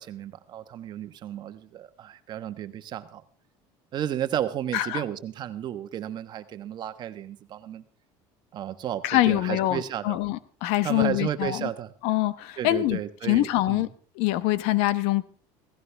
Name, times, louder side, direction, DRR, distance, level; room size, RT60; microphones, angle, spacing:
voice 1, 0.0-3.2 3.9-7.8 8.5-10.2 10.8-11.9 12.6-13.9, right 10 dB, 45° right, 1.3 m, -33 dB
voice 2, 9.0-11.7 12.0-13.0 13.3-13.9 14.2-15.2, left 16 dB, 75° left, 0.9 m, -24 dB
16.5 x 16.0 x 3.5 m
cardioid pair, 125°, 10 cm